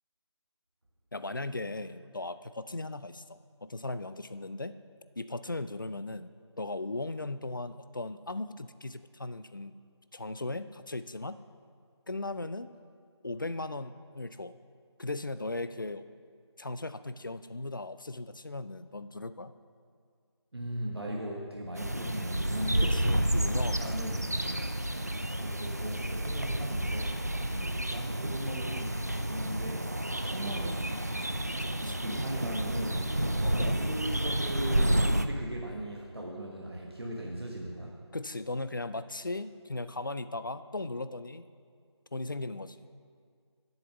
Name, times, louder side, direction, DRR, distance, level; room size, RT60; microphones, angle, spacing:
voice 1, 1.1-4.8 5.2-6.3 6.6-9.7 10.1-11.4 12.1-12.7 13.2-14.6 15.0-16.1 16.6-19.5 22.8-24.0 27.5-27.8 31.8-32.0 33.4-33.8 38.1-41.5 42.1-42.8, left 2 dB, 45° left, 12 dB, 0.4 m, -37 dB
voice 2, 20.5-23.0 23.6-24.3 25.3-27.2 27.6-30.8 31.8-38.0, right 1 dB, 60° right, -2 dB, 1.4 m, -38 dB
sound 1, 21.7-35.3, right 1 dB, 35° right, 0.4 m, -30 dB
7.9 x 6.9 x 6.8 m, 2.1 s
figure-of-eight pair, 170°, 15 cm